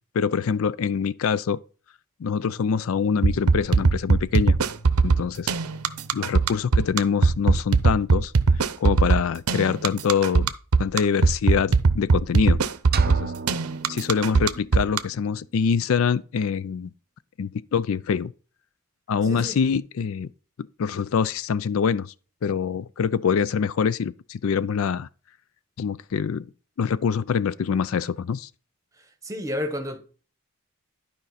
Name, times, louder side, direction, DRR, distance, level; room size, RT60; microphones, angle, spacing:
voice 1, 0.1-1.6 2.2-4.6 5.0-5.5 6.1-10.5 10.8-12.6 13.1-13.3 13.9-16.9 17.4-18.3 19.1-20.3 20.6-22.1 22.4-25.1 25.8-26.5 26.8-28.5, left 6 dB, 65° left, 0.4 m, -25 dB
sound 1, 2.4-8.2, right 1 dB, 15° left, 1.1 m, -47 dB
sound 2, 3.2-15.0, right 4 dB, 85° right, 0.7 m, -19 dB
sound 3, 12.9-14.9, right 5 dB, 45° right, 0.5 m, -34 dB
voice 2, 19.2-19.6 29.0-30.0, left 1 dB, 15° right, 1.2 m, -31 dB
11.5 x 5.2 x 4.1 m
head